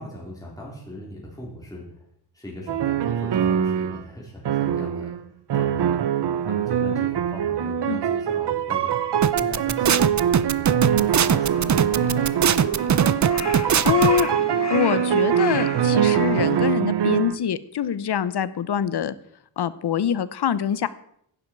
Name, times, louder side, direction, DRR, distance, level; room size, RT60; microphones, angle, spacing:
voice 1, 0.0-2.1 2.3-5.3 5.5-6.0 6.5-8.9 9.4-11.7, equal, 10° left, -4 dB, 4.0 m, -39 dB
sound 1, 2.7-4.0 4.5-5.2 5.5-17.4, right 9 dB, 80° right, 0.8 m, -23 dB
sound 2, 9.2-14.2, right 8 dB, 45° right, 0.6 m, -20 dB
Crow, 11.2-16.7, left 5 dB, 40° left, 1.2 m, -35 dB
voice 2, 13.8-14.3 14.7-19.1 19.6-20.9, left 8 dB, 75° left, 16 dB, 0.9 m, -24 dB
15.5 x 11.0 x 4.7 m, 0.69 s
wide cardioid pair, 130°, 40 cm